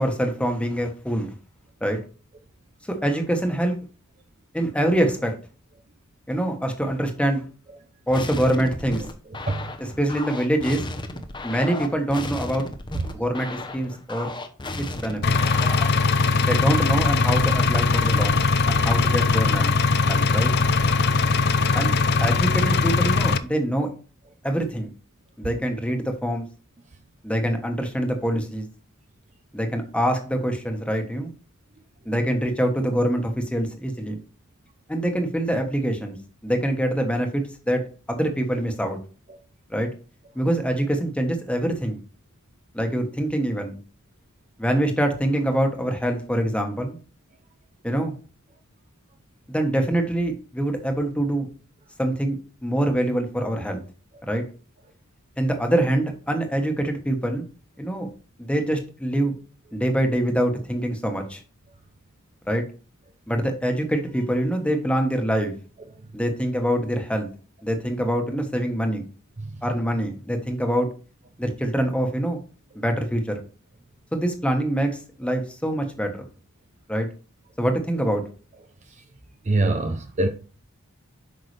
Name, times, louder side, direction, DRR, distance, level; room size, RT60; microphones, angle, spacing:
voice 1, 0.0-1.3 1.8-2.0 2.9-3.7 4.5-5.3 6.3-7.4 8.1-9.1 10.0-10.8 11.4-12.6 13.1-14.3 14.8-15.3 16.4-18.4 18.7-19.7 20.1-20.5 21.7-21.9 22.2-23.9 24.4-24.9 25.4-26.4 27.2-28.6 29.5-31.3 32.0-34.2 34.9-36.2 36.4-37.8 38.1-39.0 39.7-39.9 40.3-42.0 42.7-43.8 44.6-47.0 47.8-48.1 49.5-51.5 52.0-52.4 52.6-53.8 54.3-54.4 55.4-57.4 57.8-58.1 58.4-59.3 59.7-61.4 62.5-62.6 63.3-65.5 66.1-67.3 67.6-69.1 69.6-70.9 71.4-72.4 72.7-73.4 74.1-76.3 76.9-77.1 77.6-78.2, right 1 dB, 5° left, 1.3 m, -24 dB
sound 1, 8.1-16.1, left 2 dB, 20° left, 0.8 m, -34 dB
voice 2, 9.3-10.0 12.9-13.2 39.3-39.4 54.1-54.3 65.9-66.1 69.4-69.6 78.8-79.0 79.4-80.3, right 2 dB, 35° right, 0.6 m, -27 dB
Engine, 15.2-23.4, left 4 dB, 50° left, 0.5 m, -20 dB
8.3 x 5.8 x 3.4 m
head